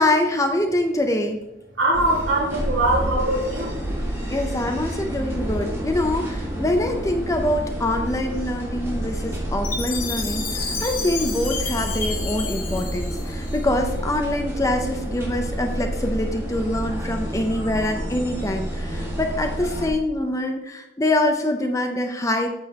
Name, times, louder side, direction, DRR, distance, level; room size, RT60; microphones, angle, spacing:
voice 1, 0.0-1.4 4.3-22.5, left 1 dB, 15° left, 5 dB, 0.6 m, -24 dB
voice 2, 1.7-3.8, right 1 dB, 70° right, -4 dB, 2.9 m, -22 dB
sound 1, 1.9-19.9, right 1 dB, 15° right, 1.7 m, -29 dB
Chime, 9.6-13.9, left 5 dB, 45° left, 1.3 m, -31 dB
8.5 x 7.0 x 2.9 m, 0.94 s
head